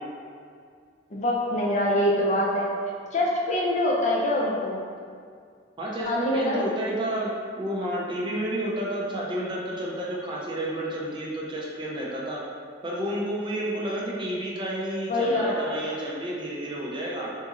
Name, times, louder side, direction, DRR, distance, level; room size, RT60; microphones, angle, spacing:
voice 1, 1.1-2.7 3.1-4.8 6.1-6.6 15.1-15.5, left 1 dB, 35° left, -3 dB, 0.5 m, -24 dB
voice 2, 5.8-12.4 12.8-17.3, right 1 dB, 25° right, -4 dB, 0.4 m, -30 dB
3.7 x 2.9 x 2.4 m, 2.2 s
head